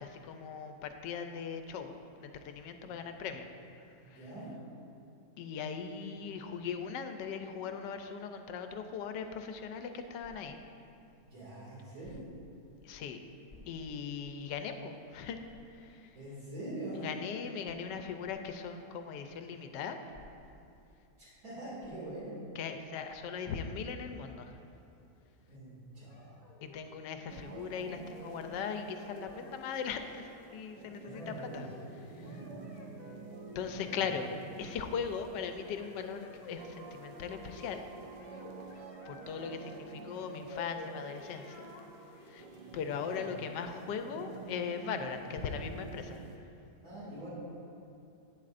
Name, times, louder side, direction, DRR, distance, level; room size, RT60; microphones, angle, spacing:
voice 1, 0.0-3.5 4.1-4.3 5.4-10.6 12.8-13.2 13.7-15.4 15.7-16.1 17.0-20.0 22.5-24.6 26.6-31.7 32.1-32.3 33.5-34.3 34.6-37.8 39.1-41.7 42.3-42.5 42.7-46.2, left 6 dB, 85° left, 7 dB, 1.2 m, -39 dB
voice 2, 4.0-4.5 11.3-12.2 16.1-17.1 21.2-22.4 25.5-26.3 31.0-32.5 33.8-34.3 43.0-43.2 46.8-47.3, right 1 dB, 60° right, -8 dB, 2.8 m, -44 dB
sound 1, 10.2-10.7 12.0-12.5 13.5-14.1 14.6-14.7 15.4-15.8 18.2-18.5 20.1-20.6 21.8-22.1, left 1 dB, 10° left, 1.9 m, -57 dB
sound 2, 26.1-26.9 27.5-28.6 29.1-30.6 31.0-31.8 32.2-34.0 34.3-35.2 35.5-37.8 38.2-39.8 40.1-43.2, left 2 dB, 50° left, 1.5 m, -53 dB
sound 3, 27.3-46.4, right 4 dB, 90° right, 1.3 m, -50 dB
11.5 x 8.5 x 2.5 m, 2.8 s
omnidirectional pair, 1.8 m